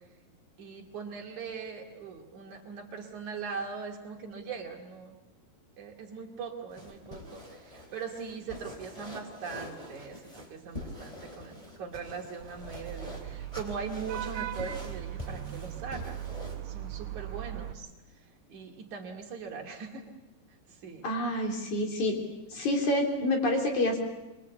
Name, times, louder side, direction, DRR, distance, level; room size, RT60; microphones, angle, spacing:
voice 1, 0.6-5.2 5.8-16.2 16.7-17.9 18.5-20.0 20.8-21.1, right 5 dB, 50° right, 1 dB, 3.6 m, -40 dB
Footsteps Cowboy Boots Damp Sand Created, 6.7-16.6, left 1 dB, 10° left, 3.1 m, -45 dB
Vehicle horn car horn honking / Traffic noise roadway noise, 12.4-17.7, right 12 dB, 70° right, 2.9 m, -39 dB
voice 2, 21.0-22.2 22.5-24.0, left 1 dB, 50° left, 2 dB, 4.5 m, -27 dB
24.5 x 22.5 x 8.3 m, 1.0 s
omnidirectional pair, 4.7 m